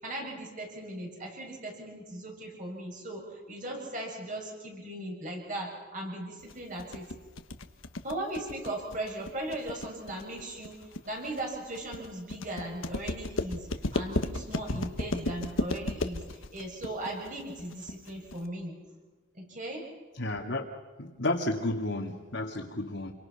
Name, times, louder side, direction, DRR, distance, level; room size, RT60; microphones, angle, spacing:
voice 1, 0.0-7.1 8.0-13.7 13.9-18.8 19.3-19.9, right 1 dB, 40° right, 0 dB, 7.3 m, -38 dB
sound 1, 6.5-18.5, left 2 dB, 85° left, 1.5 m, -34 dB
voice 2, 20.2-20.6 21.0-23.1, left 2 dB, 65° left, -2 dB, 2.2 m, -32 dB
28.5 x 24.0 x 6.0 m, 1.3 s
head